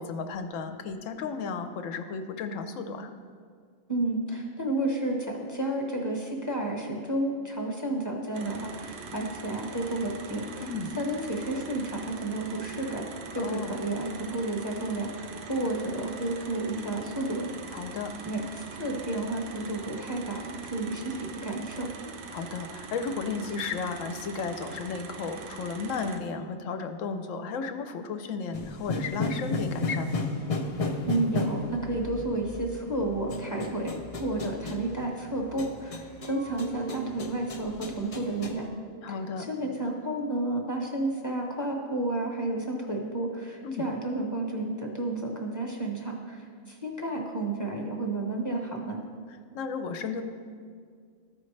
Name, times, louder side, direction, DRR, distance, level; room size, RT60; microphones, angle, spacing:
voice 1, 0.0-3.1 10.6-11.0 13.4-13.8 17.7-18.1 22.3-30.3 39.0-39.5 43.6-43.9 49.5-50.2, left 5 dB, 70° left, 8 dB, 0.9 m, -34 dB
voice 2, 3.9-10.6 11.0-13.0 13.3-17.5 18.3-21.9 31.1-38.7 39.1-49.0, right 2 dB, 15° left, 0 dB, 0.8 m, -31 dB
sound 1, 8.3-26.2, right 5 dB, 85° right, 1.2 m, -43 dB
sound 2, 28.5-38.6, left 3 dB, 50° left, 0.4 m, -34 dB
sound 3, 36.1-37.4 38.0-38.1 38.4-39.6, right 4 dB, 60° right, 0.5 m, -45 dB
13.0 x 5.2 x 3.2 m, 2.1 s
omnidirectional pair, 1.4 m